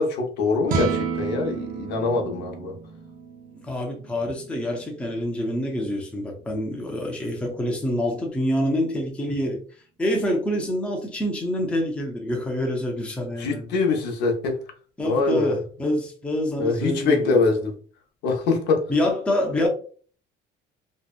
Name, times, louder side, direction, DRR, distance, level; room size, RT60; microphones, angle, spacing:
voice 1, 0.0-2.8 13.4-14.6 15.0-15.6 16.6-17.7 18.2-18.9, left 3 dB, 75° left, 0.6 m, -23 dB
sound 1, 0.6-7.0, right 6 dB, 50° right, 0.5 m, -33 dB
voice 2, 3.6-9.6 10.0-13.7 15.0-17.4 18.9-19.7, left 1 dB, 5° left, 0.4 m, -26 dB
2.7 x 2.1 x 2.3 m
cardioid pair, 165°, 18 cm